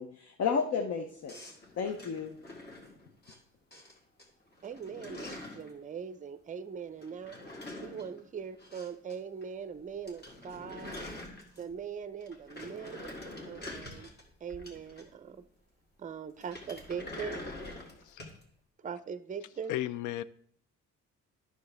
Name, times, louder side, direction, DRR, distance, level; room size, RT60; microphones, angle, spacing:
voice 1, 0.0-2.4, left 6 dB, 55° left, 6 dB, 0.8 m, -33 dB
sound 1, 1.3-3.4 3.7-4.2 4.5-5.7 7.0-9.2 9.4-9.5 9.8-9.9 10.1-11.8 12.2-15.3 16.4-18.4, left 1 dB, 35° left, 1.8 m, -45 dB
voice 2, 4.6-7.4 7.8-11.1 11.6-13.1 13.4-14.1 14.4-15.4 16.0-17.4 18.8-19.7, right 6 dB, 25° right, 13 dB, 0.5 m, -41 dB
voice 3, 19.7-20.2, left 14 dB, 80° left, 17 dB, 0.5 m, -34 dB
9.4 x 6.2 x 3.4 m, 0.63 s
cardioid pair, 90°, 30 cm